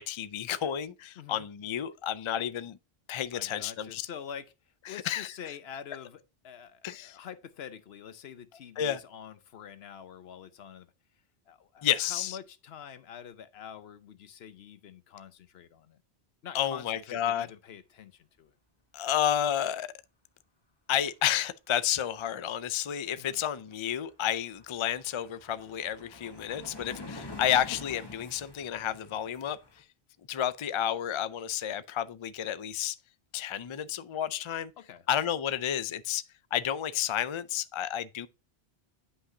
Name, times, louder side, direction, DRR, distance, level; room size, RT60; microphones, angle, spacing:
voice 1, 0.0-2.8 3.1-4.1 4.9-5.3 6.8-7.2 8.8-9.0 11.8-12.4 16.5-17.5 18.9-19.9 20.9-29.6 30.3-33.0 33.3-34.7 35.1-36.2 36.5-38.3, left 10 dB, 55° left, 0.3 m, -31 dB
voice 2, 1.2-1.5 3.3-10.9 11.5-16.0 16.4-18.5 23.2-23.4 34.8-35.1, left 8 dB, 75° left, 1.0 m, -46 dB
sound 1, 23.7-23.8 24.1-29.8, left 2 dB, 25° left, 1.1 m, -46 dB
9.9 x 5.6 x 2.7 m
omnidirectional pair, 1.1 m